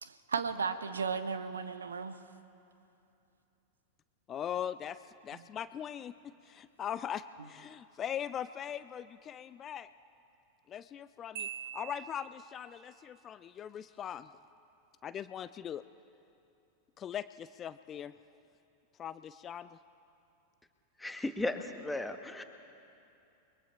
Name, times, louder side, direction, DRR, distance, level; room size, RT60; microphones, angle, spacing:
voice 1, 0.0-2.2 5.3-5.5, right 5 dB, 70° right, 12 dB, 0.9 m, -35 dB
voice 2, 4.3-9.9 10.7-14.3 15.0-15.8 17.0-18.1 19.0-19.8, left 9 dB, 25° left, 14 dB, 0.4 m, -40 dB
Marimba xylophone, 11.4-12.8, right 9 dB, 50° right, 2.1 m, -43 dB
voice 3, 21.0-22.4, left 2 dB, 5° left, 7 dB, 1.3 m, -35 dB
29.0 x 21.5 x 4.5 m, 2.7 s
figure-of-eight pair, 90°, 0 cm